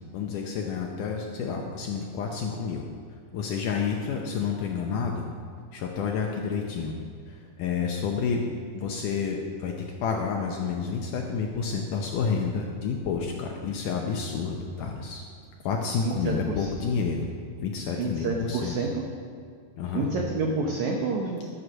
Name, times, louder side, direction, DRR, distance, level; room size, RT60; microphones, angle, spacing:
voice 1, 0.1-2.8 3.3-5.3 5.7-6.9 7.3-8.5 8.7-15.2 15.6-17.3 17.6-18.8 19.8-20.1, left 5 dB, 85° left, 1 dB, 1.8 m, -29 dB
voice 2, 16.0-16.7 18.0-19.1 19.9-21.4, right 3 dB, 85° right, 1 dB, 1.6 m, -29 dB
12.5 x 7.8 x 6.2 m, 2.2 s
omnidirectional pair, 4.7 m